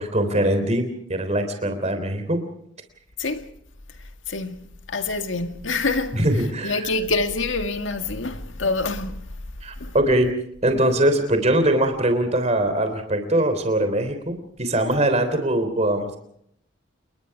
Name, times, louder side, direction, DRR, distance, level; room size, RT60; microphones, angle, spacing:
voice 1, 0.0-2.4 6.1-6.9 9.6-10.3 10.6-16.2, right 1 dB, 35° right, 3.4 m, -22 dB
voice 2, 4.3-6.2 6.6-9.2 9.8-9.9, left 3 dB, 85° left, 2.0 m, -26 dB
28.5 x 21.5 x 4.8 m
head